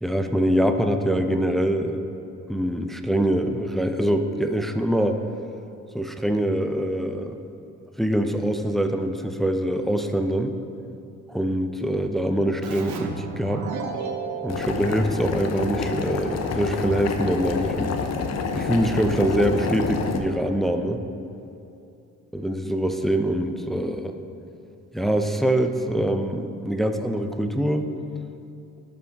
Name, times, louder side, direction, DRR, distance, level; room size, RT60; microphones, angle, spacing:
voice 1, 0.0-2.0 2.5-5.2 5.9-7.4 8.0-10.6 11.3-13.7 14.4-18.0 18.5-21.0 22.3-24.2 24.9-27.9, right 1 dB, ahead, 6 dB, 0.4 m, -24 dB
Keyboard (musical), 12.6-16.0, right 5 dB, 75° right, 0.8 m, -34 dB
Boiling, 14.5-20.2, left 5 dB, 60° left, 0.7 m, -28 dB
12.0 x 5.3 x 3.4 m, 2.7 s
cardioid pair, 90°, 30 cm